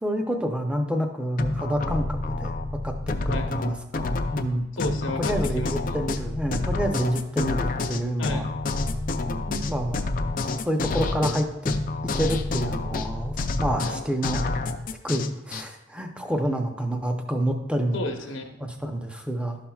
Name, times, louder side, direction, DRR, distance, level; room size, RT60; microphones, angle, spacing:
voice 1, 0.0-2.5 2.8-3.0 3.3-4.7 5.2-8.4 9.3-10.1 10.6-11.7 12.1-14.5 15.0-18.0 18.6-19.6, equal, 5° right, 4 dB, 0.6 m, -28 dB
sound 1, 1.4-15.6, left 3 dB, 45° left, 0.4 m, -28 dB
voice 2, 4.7-6.0 8.2-8.5 13.8-14.1 17.9-18.6, left 2 dB, 80° left, 3 dB, 1.0 m, -33 dB
12.0 x 5.7 x 2.3 m, 0.91 s
head